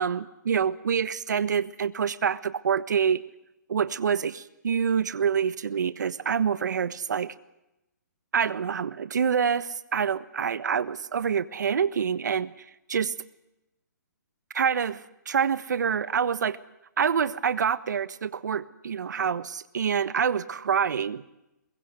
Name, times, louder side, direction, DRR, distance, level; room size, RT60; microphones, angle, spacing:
voice 1, 0.0-3.2 3.7-7.3 8.3-12.5 12.9-13.1 14.5-16.6 17.0-21.2, right 7 dB, 75° right, 14 dB, 1.4 m, -26 dB
23.5 x 22.0 x 8.2 m, 0.90 s
hypercardioid pair, 150°, 10 cm